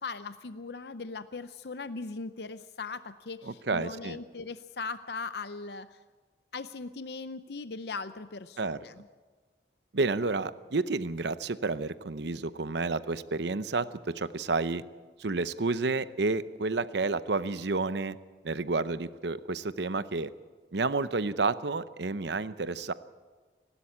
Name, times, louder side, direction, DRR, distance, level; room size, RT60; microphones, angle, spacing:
voice 1, 0.0-6.0 6.5-9.1, left 4 dB, 65° left, 12 dB, 0.6 m, -39 dB
voice 2, 3.4-4.2 8.6-8.8 9.9-14.8 15.2-18.2 18.4-20.3 20.7-22.9, right 3 dB, 75° right, 14 dB, 0.8 m, -30 dB
28.5 x 12.5 x 8.6 m, 1.4 s
head